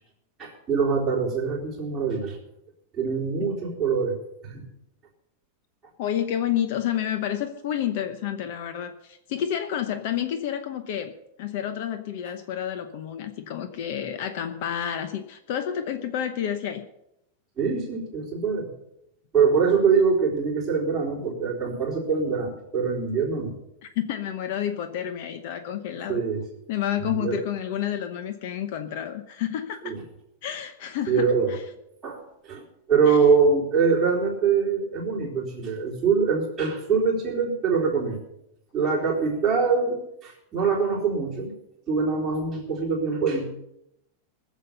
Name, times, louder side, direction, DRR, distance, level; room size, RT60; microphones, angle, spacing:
voice 1, 0.4-2.4 3.0-4.6 17.6-18.7 19.3-23.5 26.1-26.4 27.1-27.4 29.8-30.0 31.1-31.5 32.0-32.6 32.9-38.2 38.7-41.5 41.9-43.5, right 5 dB, 10° right, -5 dB, 3.9 m, -24 dB
voice 2, 6.0-11.1 11.4-16.8 23.8-26.2 26.7-30.0 30.4-31.6 33.1-33.2, left 10 dB, 45° left, 9 dB, 0.9 m, -30 dB
20.0 x 7.5 x 6.7 m, 0.82 s
supercardioid pair, 175°, 0 cm